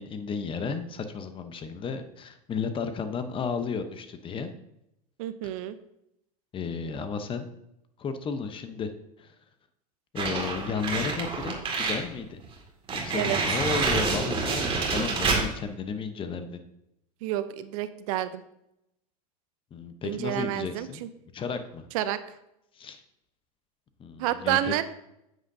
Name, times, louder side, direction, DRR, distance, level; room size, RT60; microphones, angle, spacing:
voice 1, 0.0-4.5 6.5-7.5 8.0-8.9 9.2-9.3 10.1-12.4 12.9-16.6 19.7-21.0 21.3-21.8 22.8-23.0 24.0-24.7, left 5 dB, 25° left, 9 dB, 0.9 m, -33 dB
voice 2, 5.2-5.8 13.2-13.4 17.2-18.4 20.0-21.1 21.9-22.2 24.2-24.8, right 13 dB, 60° right, 12 dB, 0.7 m, -29 dB
sound 1, 10.2-12.0 12.4-12.5 12.9-15.5, right 4 dB, 25° right, 2.1 m, -27 dB
9.8 x 8.0 x 2.7 m, 0.82 s
hypercardioid pair, 115°, 20 cm